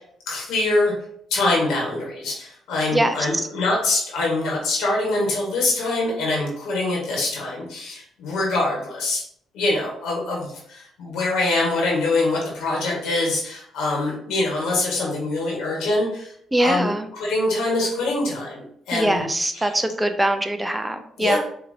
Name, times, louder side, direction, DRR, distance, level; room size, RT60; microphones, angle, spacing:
voice 1, 0.3-0.9 1.3-9.2 9.5-16.3 16.6-19.2 19.5-19.7 21.2-21.4, left 2 dB, 85° left, -2 dB, 1.3 m, -24 dB
voice 2, 2.9-3.5 16.5-17.1 18.9-21.4, right 1 dB, 10° right, 7 dB, 0.5 m, -22 dB
5.0 x 2.8 x 2.6 m, 0.67 s
cardioid pair, 90°, 0 cm